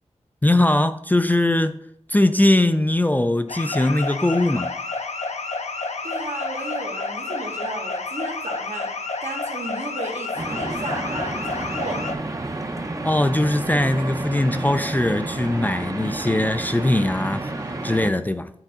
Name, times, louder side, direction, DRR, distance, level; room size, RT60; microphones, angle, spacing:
voice 1, 0.4-1.8 2.1-4.8 13.0-17.5 17.8-18.5, left 1 dB, 15° left, 0.3 m, -20 dB
sound 1, 3.5-12.1, left 3 dB, 65° left, 0.6 m, -30 dB
voice 2, 6.0-8.9 9.2-12.0, right 2 dB, 75° right, 1.5 m, -34 dB
sound 2, 10.4-18.1, right 2 dB, 25° right, 0.6 m, -30 dB
9.0 x 3.8 x 3.6 m
wide cardioid pair, 100°, 12 cm